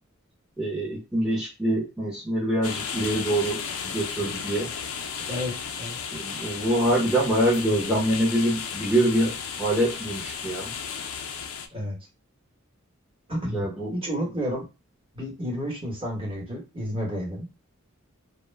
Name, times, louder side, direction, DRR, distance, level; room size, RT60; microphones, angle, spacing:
voice 1, 0.6-4.7 6.1-10.7 13.4-13.9, right 1 dB, 5° right, -8 dB, 0.6 m, -25 dB
sound 1, 2.6-11.7, left 6 dB, 75° left, 0.4 m, -34 dB
voice 2, 13.3-13.6 13.9-14.6 15.1-17.5, equal, 25° right, -2 dB, 1.0 m, -30 dB
2.1 x 2.0 x 3.2 m, 0.27 s
head